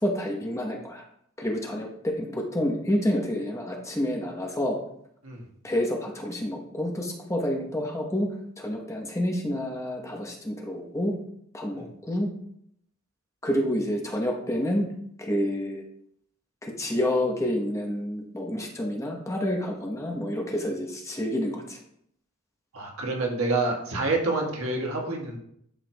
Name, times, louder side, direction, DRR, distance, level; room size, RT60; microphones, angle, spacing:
voice 1, 0.0-1.0 1.4-4.8 5.6-8.3 8.6-11.1 11.5-12.3 13.4-14.8 15.2-15.8 16.6-21.8, left 1 dB, 15° left, 1 dB, 1.0 m, -28 dB
voice 2, 22.7-25.4, right 2 dB, 70° right, 0 dB, 1.5 m, -27 dB
11.5 x 4.6 x 2.3 m, 0.71 s
head